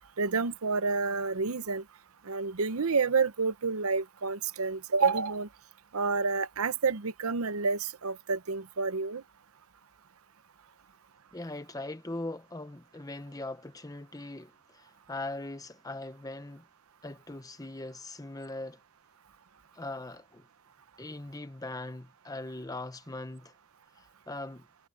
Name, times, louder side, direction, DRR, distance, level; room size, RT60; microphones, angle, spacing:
voice 1, 0.2-1.8 2.3-5.5 5.9-9.2, right 4 dB, 80° right, 0.8 m, -29 dB
voice 2, 11.3-16.6 17.0-18.8 19.7-20.5 21.0-23.5 24.0-24.7, left 2 dB, 15° left, 1.0 m, -40 dB
head